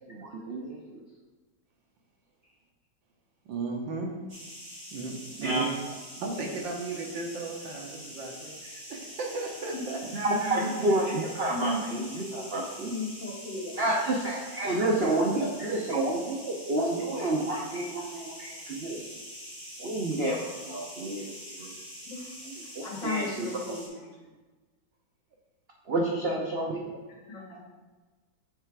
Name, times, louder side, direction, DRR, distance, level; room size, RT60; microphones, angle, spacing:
voice 1, 0.0-1.0 5.4-5.7 10.1-12.9 13.8-19.0 19.8-21.7 22.4-23.8 25.9-27.0, right 2 dB, 55° right, -2 dB, 0.6 m, -30 dB
voice 2, 3.5-4.1 4.9-5.7 6.2-10.0, right 3 dB, 80° right, 0 dB, 1.8 m, -35 dB
sound 1, 4.3-23.9, equal, 20° right, 1.9 m, -45 dB
voice 3, 10.3-10.7 11.5-12.4 12.9-13.9 22.1-22.2 22.8-23.9 26.3-26.4 27.3-27.6, left 2 dB, 70° left, -5 dB, 2.5 m, -35 dB
8.1 x 3.4 x 4.7 m, 1.3 s
omnidirectional pair, 2.0 m